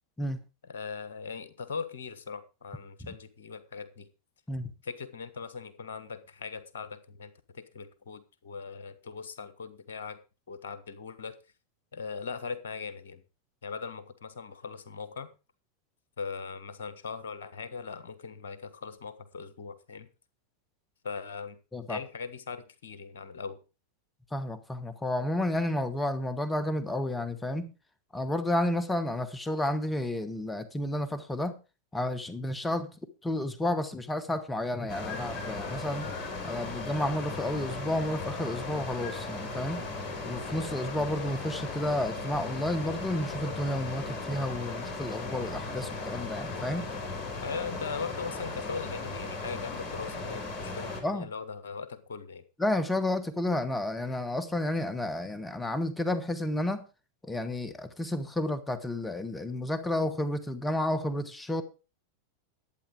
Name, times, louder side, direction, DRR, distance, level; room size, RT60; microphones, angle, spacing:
voice 1, 0.7-4.1 4.8-10.2 10.5-11.4 11.9-13.2 13.6-15.3 16.2-20.1 21.0-21.6 21.9-23.6 47.4-52.4, left 5 dB, 65° left, 1.3 m, -40 dB
voice 2, 24.3-27.7 28.1-31.5 31.9-32.9 33.2-36.1 36.4-39.8 40.2-46.9 51.0-51.3 52.6-56.8 57.2-61.6, left 1 dB, 10° left, 1.3 m, -31 dB
sound 1, 34.9-51.0, left 3 dB, 35° left, 4.0 m, -37 dB
11.5 x 9.0 x 5.0 m
figure-of-eight pair, 90°, 0 cm